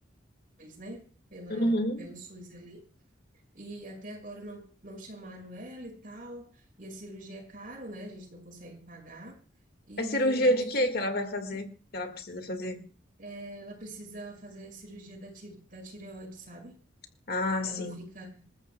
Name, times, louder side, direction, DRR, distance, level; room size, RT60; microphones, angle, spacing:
voice 1, 0.6-2.8 3.5-9.4 9.9-10.7 10.9-11.1 11.5-11.6 13.2-16.8 17.6-18.3, right 1 dB, 45° right, 5.9 m, -44 dB
voice 2, 1.5-2.1 10.0-11.7 11.9-12.8 17.3-18.0, equal, 50° left, 1.8 m, -28 dB
27.5 x 14.0 x 2.3 m
head